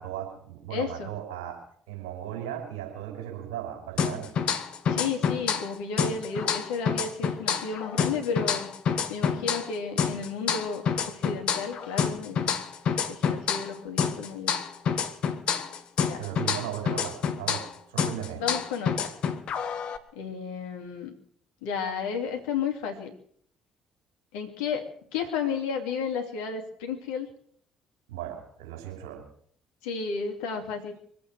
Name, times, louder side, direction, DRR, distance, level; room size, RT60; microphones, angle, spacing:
voice 1, 0.0-1.6 1.9-4.4 16.2-18.4 28.1-29.2, right 11 dB, 75° right, 1 dB, 5.4 m, -37 dB
voice 2, 0.7-1.1 4.9-8.7 9.1-12.5 13.1-14.6 16.0-16.2 18.4-19.1 20.1-21.1 21.6-23.1 24.3-27.3 29.8-31.0, left 5 dB, 70° left, 4 dB, 2.7 m, -32 dB
sound 1, 4.0-5.7 6.0-9.7 10.0-13.7 14.0-17.7 18.0-20.0, left 7 dB, 55° left, 1.4 m, -28 dB
24.5 x 8.5 x 6.4 m, 0.62 s
figure-of-eight pair, 50°, 2 cm